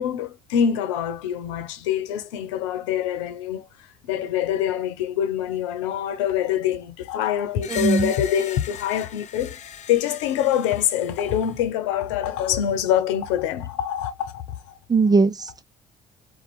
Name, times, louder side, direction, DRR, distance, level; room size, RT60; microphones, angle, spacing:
voice 1, 0.0-14.8, left 10 dB, 85° left, 0.9 m, -25 dB
Screech, 7.6-11.6, left 9 dB, 50° left, 0.8 m, -39 dB
voice 2, 7.7-8.1 14.9-15.6, right 4 dB, 25° right, 0.7 m, -20 dB
4.3 x 2.5 x 4.3 m
hypercardioid pair, 60°, 15 cm